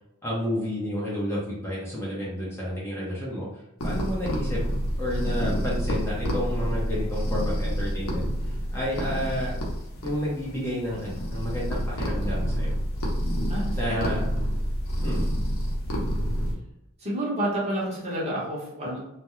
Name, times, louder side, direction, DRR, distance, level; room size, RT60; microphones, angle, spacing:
voice 1, 0.2-4.6 5.0-9.6 10.0-12.8 13.8-14.3 15.0-15.3, equal, 10° left, -7 dB, 0.7 m, -31 dB
sound 1, 3.8-16.5, equal, 70° left, 0.7 m, -28 dB
voice 2, 13.5-14.1 15.0-15.2 17.0-19.0, right 1 dB, 30° right, -5 dB, 0.9 m, -30 dB
2.3 x 2.1 x 3.0 m, 0.85 s
head